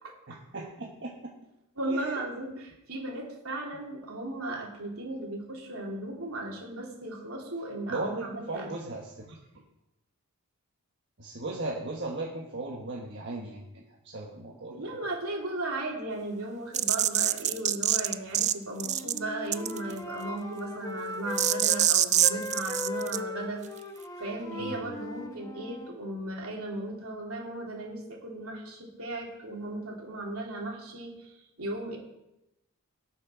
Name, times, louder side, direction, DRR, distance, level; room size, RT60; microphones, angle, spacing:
voice 1, 0.3-1.3 1.9-2.2 7.9-9.4 11.2-14.8 24.6-24.8, right 2 dB, 55° right, -2 dB, 1.3 m, -37 dB
voice 2, 1.8-8.7 14.7-23.6 24.2-32.0, right 2 dB, 75° right, -2 dB, 3.1 m, -36 dB
sound 1, 16.7-18.5 18.8-19.2 19.5-19.9 21.4-23.2, right 11 dB, 30° right, 0.4 m, -24 dB
Wind instrument woodwind instrument, 18.8-21.9 22.2-26.0, left 2 dB, 15° left, 1.2 m, -38 dB
18.0 x 6.1 x 5.0 m, 0.90 s
head